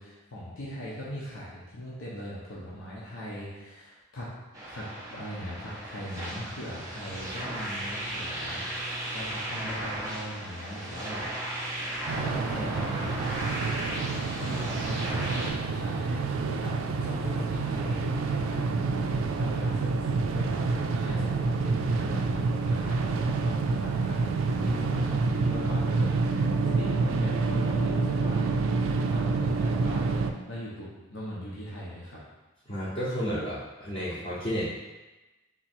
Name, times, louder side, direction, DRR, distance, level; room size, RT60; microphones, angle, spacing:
voice 1, 0.0-4.3 4.7-11.2 12.1-14.1 14.4-18.6 19.0-28.4 28.8-32.2, equal, 80° left, -7 dB, 1.0 m, -40 dB
sound 1, 4.5-15.5, right 1 dB, 15° right, 0.9 m, -36 dB
sound 2, 12.1-30.3, right 4 dB, 90° right, 0.4 m, -28 dB
voice 2, 32.7-34.7, equal, 30° left, -10 dB, 0.8 m, -32 dB
3.9 x 3.0 x 4.4 m, 1.1 s
head